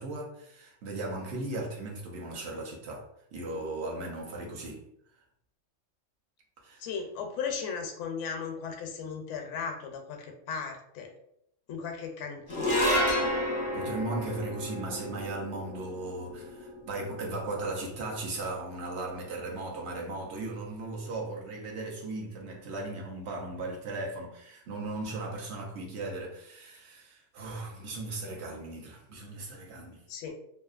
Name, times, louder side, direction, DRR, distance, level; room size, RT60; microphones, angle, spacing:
voice 1, 0.0-3.1 3.3-4.8 6.6-6.9 13.7-30.0, right 2 dB, 65° right, 0.8 m, -37 dB
voice 2, 6.8-11.1 11.7-12.9 30.1-30.3, left 6 dB, 75° left, 0.9 m, -36 dB
sound 1, 12.5-19.0, left 1 dB, 10° right, 0.5 m, -32 dB
2.7 x 2.4 x 2.4 m
omnidirectional pair, 1.3 m